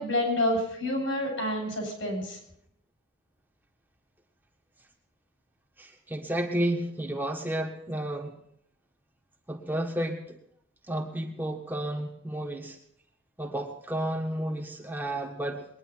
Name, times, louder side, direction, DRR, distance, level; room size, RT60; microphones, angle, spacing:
voice 1, 0.0-2.4, left 1 dB, 70° left, 1 dB, 7.8 m, -28 dB
voice 2, 5.8-8.3 9.5-10.4 10.9-12.8 13.4-15.7, right 1 dB, 10° right, 0 dB, 1.6 m, -32 dB
21.5 x 10.0 x 5.9 m, 0.71 s
head